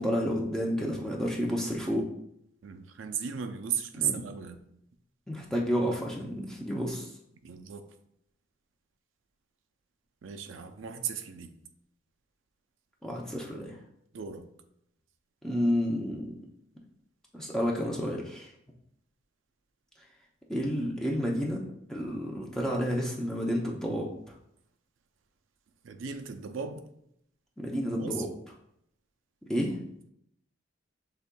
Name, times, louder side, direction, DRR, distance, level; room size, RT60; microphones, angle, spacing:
voice 1, 0.0-2.0 3.9-4.2 5.3-7.1 13.0-13.8 15.4-16.3 17.3-18.5 20.5-21.6 21.9-24.3 27.6-28.3 29.5-29.8, equal, 5° left, -2 dB, 0.5 m, -30 dB
voice 2, 2.6-4.6 7.4-7.9 10.2-11.5 14.1-14.4 25.8-26.8 27.9-28.2, right 7 dB, 80° right, 8 dB, 0.5 m, -35 dB
6.7 x 3.5 x 2.2 m, 0.75 s
head